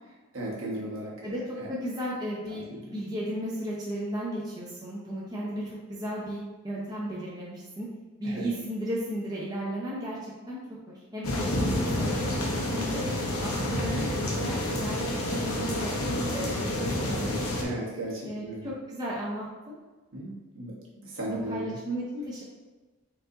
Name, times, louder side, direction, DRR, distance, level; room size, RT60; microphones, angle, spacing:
voice 1, 0.3-1.7 2.5-2.9 8.2-8.5 17.6-18.7 20.1-21.8, right 1 dB, 65° right, -5 dB, 1.3 m, -36 dB
voice 2, 1.2-7.9 8.2-10.6 10.9-13.0 13.4-14.0 14.3-15.0 15.3-15.9 16.3-16.6 17.0-17.5 18.2-19.8 21.3-22.4, equal, 20° right, -7 dB, 0.7 m, -35 dB
sound 1, 11.2-17.6, left 1 dB, 80° left, 0.8 m, -29 dB
4.6 x 2.6 x 3.9 m, 1.2 s
head